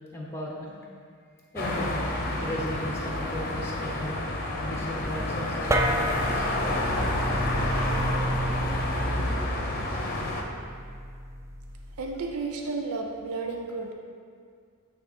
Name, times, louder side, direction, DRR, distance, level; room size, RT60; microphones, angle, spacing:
voice 1, 0.1-0.8 1.5-2.1 2.4-6.5, equal, 10° left, -3 dB, 0.8 m, -36 dB
sound 1, 1.6-10.4, left 1 dB, 40° left, 0.7 m, -29 dB
sound 2, 5.7-12.4, right 1 dB, 15° right, 0.3 m, -31 dB
voice 2, 9.2-9.6 12.0-13.9, right 3 dB, 80° right, 2 dB, 0.6 m, -33 dB
8.5 x 3.4 x 4.3 m, 2.1 s
head